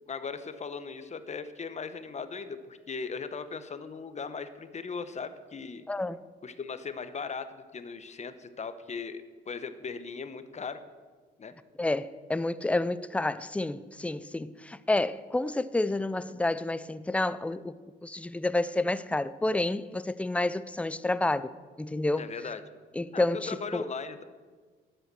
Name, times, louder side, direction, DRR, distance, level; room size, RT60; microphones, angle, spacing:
voice 1, 0.1-5.8 6.4-10.8 11.4-11.5 22.2-22.6 23.1-24.2, left 5 dB, 35° left, 0.9 m, -38 dB
voice 2, 5.9-6.2 11.8-17.8 18.0-21.5 21.8-22.3 22.9-23.9, left 2 dB, 5° left, 0.4 m, -29 dB
11.0 x 7.8 x 6.8 m
cardioid pair, 90°, 20 cm